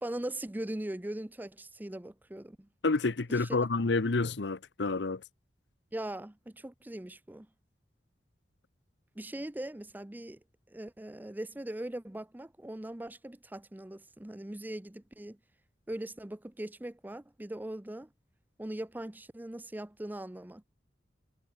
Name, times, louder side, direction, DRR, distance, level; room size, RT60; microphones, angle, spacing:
voice 1, 0.0-2.7 3.4-3.5 5.9-7.5 9.2-10.4 10.7-15.4 15.9-18.1 18.6-20.6, right 1 dB, 10° right, 0.5 m, -40 dB
voice 2, 2.8-5.2, left 3 dB, 90° left, 0.9 m, -29 dB
head